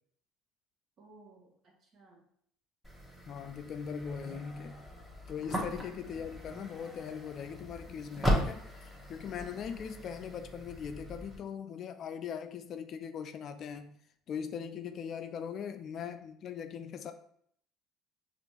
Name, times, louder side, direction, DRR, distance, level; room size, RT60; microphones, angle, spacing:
voice 1, 1.0-2.2 5.4-5.7 9.3-9.7, right 3 dB, 50° right, 0 dB, 1.2 m, -58 dB
sound 1, 2.8-11.4, equal, 5° right, 1.1 m, -38 dB
voice 2, 3.3-4.9 5.3-14.0 14.3-17.1, left 7 dB, 55° left, 9 dB, 0.4 m, -40 dB
5.1 x 2.5 x 3.1 m, 0.66 s
hypercardioid pair, 75°, 0 cm